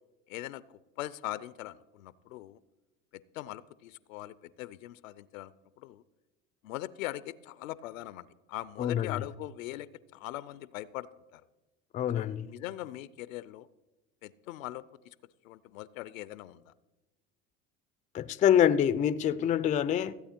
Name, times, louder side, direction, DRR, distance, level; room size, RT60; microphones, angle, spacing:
voice 1, 0.3-2.6 3.1-6.0 6.6-11.4 12.1-13.7 14.2-15.1 15.4-16.7, left 15 dB, 85° left, 0.6 m, -41 dB
voice 2, 8.8-9.2 11.9-12.5 18.1-20.1, left 9 dB, 20° left, 0.3 m, -26 dB
15.5 x 8.5 x 4.4 m
hypercardioid pair, 90°, 40 cm